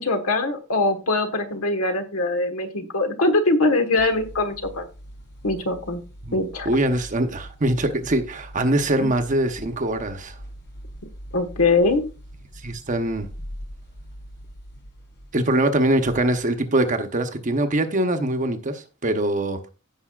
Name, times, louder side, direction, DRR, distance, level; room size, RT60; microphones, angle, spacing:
voice 1, 0.0-4.8 5.4-6.0 6.3-6.7 9.0-9.1 11.3-12.0, left 2 dB, 70° left, 1.4 m, -22 dB
sound 1, 4.0-16.6, equal, 55° left, 3.1 m, -42 dB
voice 2, 6.6-10.4 12.6-13.3 15.3-19.6, right 1 dB, 35° right, 0.9 m, -23 dB
16.0 x 5.5 x 2.4 m
head